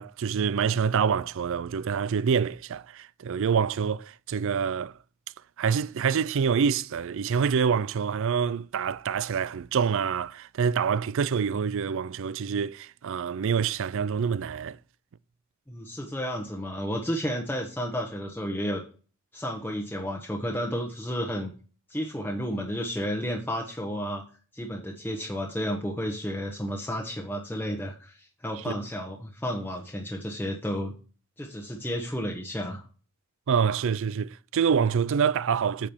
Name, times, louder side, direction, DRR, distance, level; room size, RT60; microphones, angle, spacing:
voice 1, 0.0-4.9 5.6-14.8 28.7-28.8 33.5-35.9, right 6 dB, 65° right, 0.4 m, -26 dB
voice 2, 15.7-18.8 19.3-21.5 21.9-24.2 24.5-30.9 31.4-32.8, equal, 10° left, 1.1 m, -32 dB
8.9 x 5.0 x 4.3 m
head